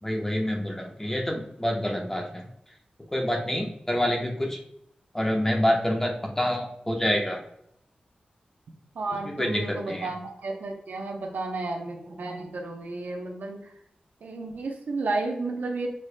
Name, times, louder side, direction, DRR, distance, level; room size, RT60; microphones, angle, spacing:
voice 1, 0.0-2.4 3.1-4.6 5.1-7.4 9.4-10.1, left 1 dB, 15° left, 0 dB, 1.0 m, -27 dB
voice 2, 8.9-13.6 14.2-15.9, right 3 dB, 90° right, 2 dB, 0.8 m, -32 dB
6.7 x 3.2 x 2.2 m, 0.74 s
wide cardioid pair, 75°, 3 cm